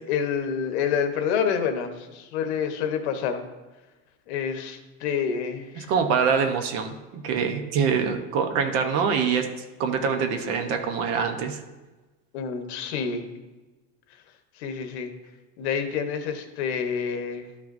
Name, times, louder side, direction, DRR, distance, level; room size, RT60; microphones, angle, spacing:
voice 1, 0.1-3.4 4.3-5.9 12.3-13.3 14.6-15.1 15.6-17.5, left 7 dB, 75° left, 6 dB, 1.1 m, -28 dB
voice 2, 5.8-6.9 7.2-9.5 9.8-11.6, right 6 dB, 45° right, 6 dB, 0.9 m, -24 dB
12.5 x 6.0 x 2.6 m, 1.2 s
cardioid pair, 175°, 33 cm